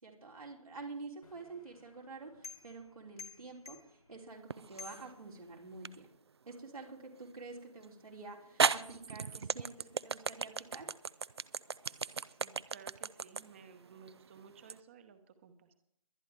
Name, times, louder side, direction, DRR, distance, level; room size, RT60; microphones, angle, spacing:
voice 1, 0.0-3.8 4.1-5.9 6.5-10.9, right 3 dB, 75° right, -1 dB, 3.2 m, -48 dB
sound 1, 1.2-5.9, left 5 dB, 85° left, 2.5 m, -54 dB
sound 2, 4.5-5.1 5.8-6.0 7.8-7.9 8.6-14.8, right 5 dB, 45° right, 0.5 m, -34 dB
voice 2, 12.3-15.7, right 6 dB, 20° right, 10 dB, 1.1 m, -56 dB
22.5 x 10.0 x 3.4 m, 0.72 s
figure-of-eight pair, 160°, 19 cm